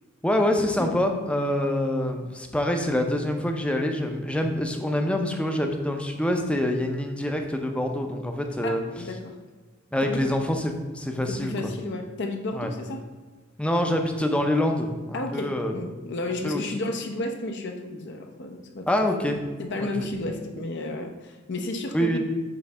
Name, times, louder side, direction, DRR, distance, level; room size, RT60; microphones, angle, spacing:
voice 1, 0.2-8.8 9.9-11.7 12.5-12.7 13.6-15.7 16.4-16.6 18.9-19.4 19.8-20.1 21.9-22.2, left 1 dB, 5° left, 4 dB, 0.6 m, -26 dB
voice 2, 8.6-9.4 10.0-10.2 11.4-13.0 15.1-18.9 19.6-22.2, left 2 dB, 55° left, 4 dB, 0.7 m, -32 dB
7.7 x 3.2 x 6.0 m, 1.3 s
head